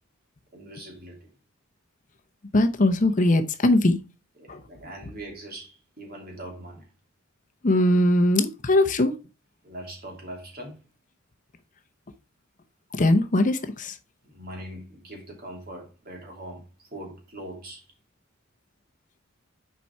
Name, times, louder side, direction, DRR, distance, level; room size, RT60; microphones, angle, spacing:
voice 1, 0.5-1.3 4.4-6.9 9.6-10.9 14.2-17.8, right 1 dB, 45° right, 2.6 m, -41 dB
voice 2, 2.5-4.0 4.5-4.6 7.6-9.1 12.9-14.0, left 1 dB, 40° left, 0.8 m, -20 dB
6.8 x 4.7 x 4.4 m
head